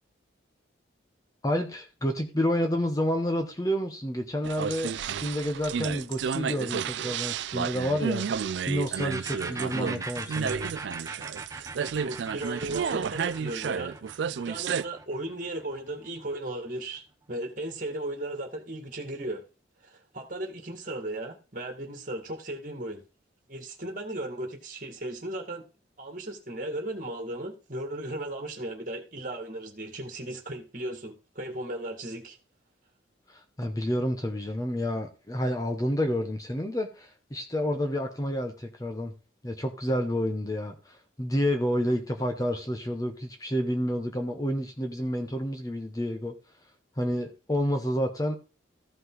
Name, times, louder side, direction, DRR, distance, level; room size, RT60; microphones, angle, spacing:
voice 1, 1.4-10.7 33.3-39.1 39.4-46.3 47.0-48.4, equal, 20° left, 0.9 m, -29 dB
sound 1, 4.4-14.8, right 7 dB, 70° right, 0.4 m, -31 dB
sound 2, 9.0-16.5, right 3 dB, 15° right, 0.8 m, -40 dB
voice 2, 12.0-14.0 14.3-17.0 17.3-19.4 19.8-23.0 23.5-25.6 26.0-32.4, right 1 dB, 45° right, 1.9 m, -36 dB
14.0 x 5.4 x 3.9 m
head